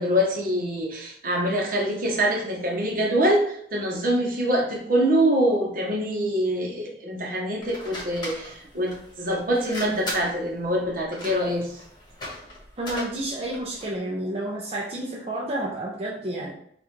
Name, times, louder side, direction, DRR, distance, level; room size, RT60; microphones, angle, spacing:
voice 1, 0.0-11.8, equal, 50° right, 0 dB, 1.0 m, -24 dB
sound 1, 7.6-14.0, left 1 dB, 25° left, 1.3 m, -38 dB
voice 2, 12.8-16.5, right 1 dB, 35° right, -5 dB, 0.6 m, -30 dB
5.3 x 2.5 x 3.2 m, 0.66 s
head